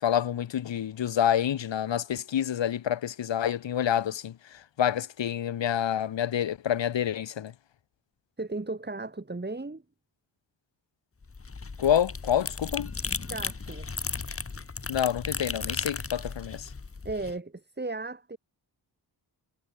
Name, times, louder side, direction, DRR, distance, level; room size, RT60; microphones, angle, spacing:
voice 1, 0.0-7.5 11.8-12.9 14.9-16.7, left 10 dB, 85° left, 1.1 m, -28 dB
voice 2, 8.4-9.8 13.3-13.9 17.0-18.4, right 3 dB, 25° right, 4.8 m, -35 dB
sound 1, 11.2-17.3, left 4 dB, 30° left, 1.8 m, -35 dB
wide cardioid pair, 115°, 43 cm